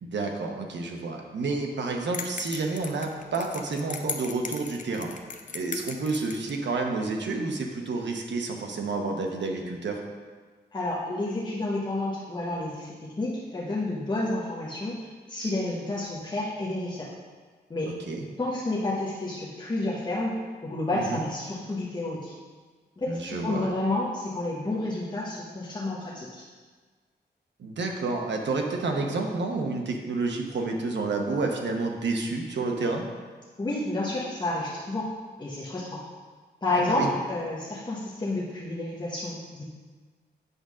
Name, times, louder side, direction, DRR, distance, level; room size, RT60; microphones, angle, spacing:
voice 1, 0.0-5.1 5.5-10.0 17.9-18.3 20.9-21.2 23.1-23.7 27.6-33.0 36.7-37.1, right 3 dB, 90° right, 2 dB, 1.0 m, -30 dB
sound 1, 2.1-6.6, left 5 dB, 45° left, 0.6 m, -37 dB
voice 2, 10.7-15.0 15.3-17.1 17.7-17.9 18.4-22.3 23.0-26.4 33.6-35.1 35.4-35.9 36.6-39.6, left 2 dB, 25° left, -6 dB, 1.0 m, -30 dB
8.1 x 3.8 x 6.1 m, 1.5 s
wide cardioid pair, 150°, 18 cm